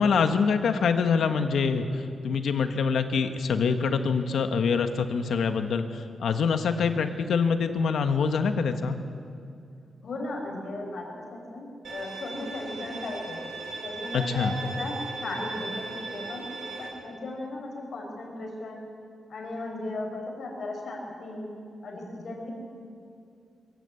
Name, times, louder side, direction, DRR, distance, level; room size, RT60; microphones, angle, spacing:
voice 1, 0.0-9.0 14.1-14.5, left 5 dB, 80° left, 7 dB, 1.4 m, -25 dB
voice 2, 10.0-13.4 13.8-16.4 16.8-18.9 19.3-21.5 21.8-22.5, left 2 dB, 60° left, 0 dB, 5.2 m, -36 dB
Bowed string instrument, 11.8-16.9, right 3 dB, 75° right, 4.6 m, -38 dB
23.0 x 14.5 x 8.4 m, 2.4 s
wide cardioid pair, 120°, 0 cm